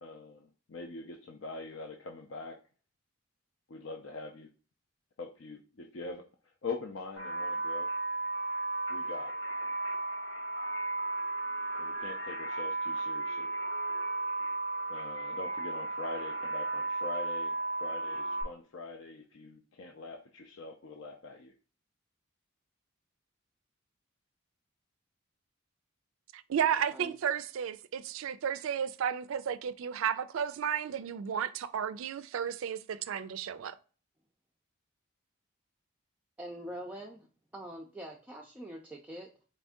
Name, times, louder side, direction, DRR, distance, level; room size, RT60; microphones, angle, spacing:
voice 1, 0.0-2.6 3.7-4.5 5.2-6.2 6.6-7.9 8.9-9.4 11.8-13.5 14.9-17.5 17.8-21.5, left 3 dB, 60° left, 0.5 m, -43 dB
sound 1, 7.2-18.4, right 2 dB, 80° left, 1.9 m, -34 dB
voice 2, 26.3-33.8, right 8 dB, 75° right, 0.3 m, -33 dB
voice 3, 36.4-37.3 37.5-39.4, equal, 5° right, 0.4 m, -44 dB
4.1 x 2.6 x 3.5 m
head